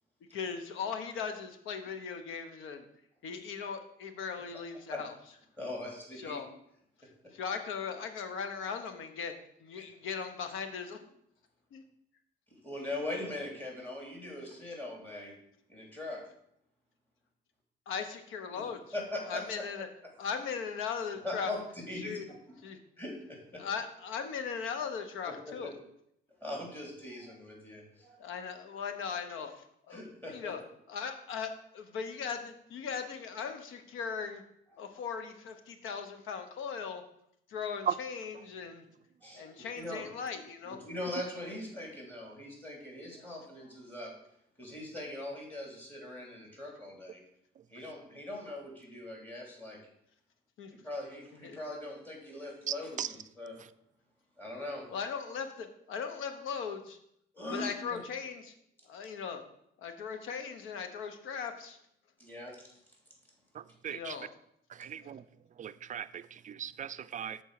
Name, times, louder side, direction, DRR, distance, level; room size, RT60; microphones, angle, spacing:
voice 1, 0.3-2.9 3.2-5.1 6.2-6.5 7.3-9.3 9.6-11.0 11.7-11.8 17.9-18.8 19.3-19.9 20.2-21.5 22.0-22.3 22.6-22.8 23.6-25.7 28.2-30.0 30.3-30.6 30.9-34.4 34.8-37.0 37.5-38.8 39.3-40.8 50.6-50.7 51.4-51.6 54.9-57.0 57.5-58.5 58.9-59.4 59.8-61.8 63.9-64.3 65.0-65.2, left 6 dB, 90° left, 1.0 m, -38 dB
voice 2, 5.6-6.4 12.6-15.3 15.7-16.2 18.9-19.6 21.2-21.6 21.9-22.2 23.0-23.1 23.5-23.6 25.5-25.7 26.4-28.2 29.9-30.5 39.2-40.0 40.6-44.1 44.6-47.2 47.7-49.8 50.8-53.5 54.4-54.8 57.3-58.0 62.2-62.6, left 1 dB, 10° left, 3.2 m, -41 dB
voice 3, 63.5-64.2 64.7-65.2 65.6-67.4, right 8 dB, 40° right, 0.4 m, -37 dB
6.9 x 4.4 x 6.4 m
cardioid pair, 90°, 20 cm